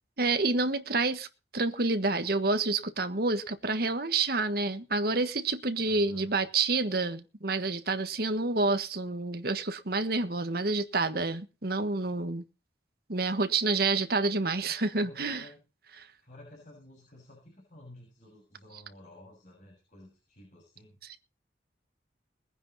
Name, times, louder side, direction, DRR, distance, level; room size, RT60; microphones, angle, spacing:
voice 1, 0.2-1.3 1.5-12.4 13.1-15.4 16.0-16.1, right 3 dB, 55° right, 1.5 m, -28 dB
voice 2, 5.9-6.4 15.0-15.6 16.2-21.0, left 1 dB, 45° left, 7.1 m, -52 dB
21.0 x 10.0 x 4.1 m
head